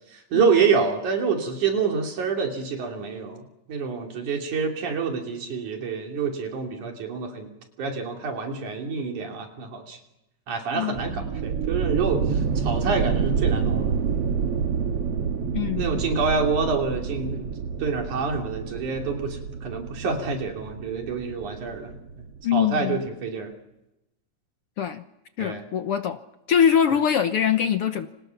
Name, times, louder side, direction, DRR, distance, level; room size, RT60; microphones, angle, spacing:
voice 1, 0.1-7.5 7.8-10.0 10.5-13.9 15.8-17.5 17.8-22.0 22.5-23.5 25.4-25.7, right 5 dB, 75° right, 2 dB, 4.4 m, -27 dB
voice 2, 10.7-11.2 15.5-16.0 22.4-23.1 24.8-25.0 25.4-26.2 26.5-28.1, left 8 dB, 65° left, 8 dB, 1.6 m, -23 dB
sound 1, 10.9-22.4, right 6 dB, 60° right, 2.2 m, -28 dB
29.5 x 26.5 x 5.8 m, 0.94 s
omnidirectional pair, 3.5 m